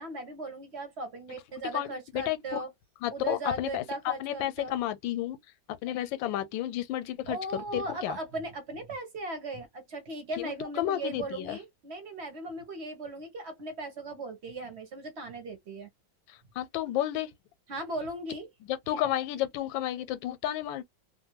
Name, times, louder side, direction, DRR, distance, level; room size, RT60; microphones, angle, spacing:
voice 1, 0.0-2.7 3.1-4.8 7.3-15.9 17.7-18.5, right 2 dB, 45° right, 0.9 m, -38 dB
voice 2, 1.7-2.4 3.0-5.4 5.8-8.2 10.4-10.5 10.8-11.6 16.6-17.3 18.7-20.8, left 12 dB, 85° left, 1.3 m, -31 dB
2.7 x 2.5 x 2.9 m
omnidirectional pair, 2.0 m